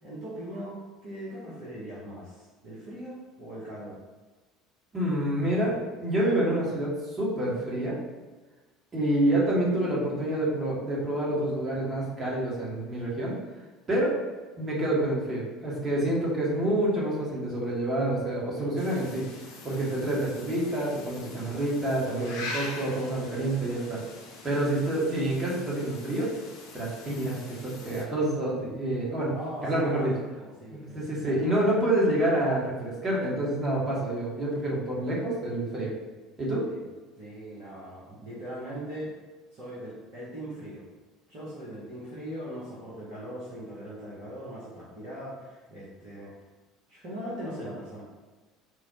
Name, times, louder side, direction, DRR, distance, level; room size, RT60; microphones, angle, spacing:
voice 1, 0.0-4.0 29.3-30.1 30.4-31.4 36.7-36.8 37.2-39.1 39.5-40.8 41.3-46.3 46.9-48.0, equal, 50° right, -8 dB, 0.9 m, -40 dB
voice 2, 4.9-8.0 8.9-13.4 13.9-14.2 14.6-19.2 19.6-24.0 24.4-26.3 26.7-29.3 29.6-30.1 30.7-35.9 36.4-36.7, right 1 dB, 30° right, -5 dB, 1.2 m, -27 dB
sound 1, 18.8-28.0, left 2 dB, 55° left, 0.5 m, -43 dB
4.3 x 2.1 x 2.8 m, 1.2 s
figure-of-eight pair, 65°, 0 cm